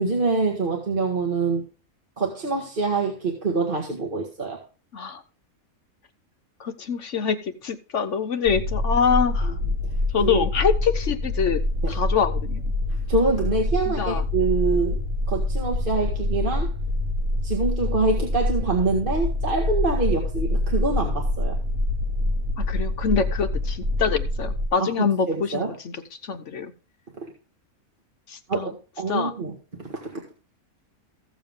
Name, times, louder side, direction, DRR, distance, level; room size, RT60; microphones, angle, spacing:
voice 1, 0.0-1.6 2.2-4.6 9.8-10.5 11.8-12.0 13.1-15.0 15.3-16.7 17.4-21.6 24.8-25.7 27.2-27.3 28.5-30.2, right 3 dB, 35° right, 1 dB, 1.8 m, -25 dB
voice 2, 6.6-9.5 10.1-11.6 11.9-12.6 13.9-14.2 22.6-26.0 26.2-26.7 28.3-28.7 29.1-29.3, left 6 dB, 60° left, 10 dB, 1.1 m, -25 dB
sound 1, 8.5-24.7, left 1 dB, 60° right, 1.8 m, -26 dB
15.0 x 7.2 x 3.6 m, 0.35 s
omnidirectional pair, 1.5 m